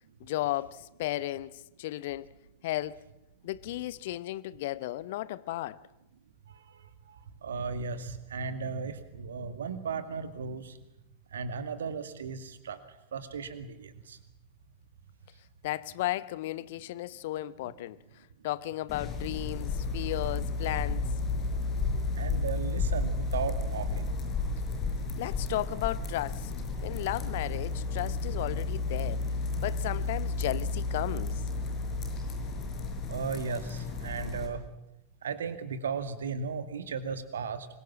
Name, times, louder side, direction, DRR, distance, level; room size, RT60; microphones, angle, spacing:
voice 1, 0.2-2.3 2.6-3.1 3.4-5.8 15.6-21.1 25.2-26.5 26.8-29.2 29.6-31.4, left 15 dB, 55° left, 0.9 m, -34 dB
voice 2, 6.5-10.8 11.3-12.8 13.1-14.2 22.2-24.1 33.1-34.6 35.2-37.7, right 5 dB, 65° right, 2.2 m, -36 dB
sound 1, 18.9-34.5, left 3 dB, 30° left, 5.6 m, -32 dB
25.0 x 22.0 x 7.5 m
figure-of-eight pair, 90°, 0 cm